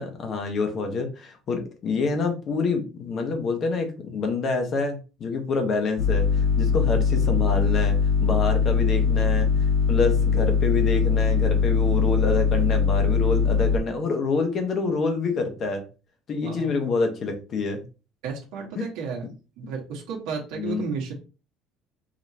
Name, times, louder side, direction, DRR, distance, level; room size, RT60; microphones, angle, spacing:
voice 1, 0.0-8.0 8.2-15.8 16.3-17.8 18.8-18.9 20.5-20.9, left 4 dB, 40° left, 5 dB, 1.1 m, -27 dB
sound 1, 6.0-13.8, left 5 dB, 65° left, 0.7 m, -21 dB
voice 2, 18.2-19.2 19.6-21.1, right 5 dB, 80° right, -1 dB, 1.3 m, -32 dB
5.1 x 3.0 x 2.8 m, 0.33 s
cardioid pair, 150°, 0 cm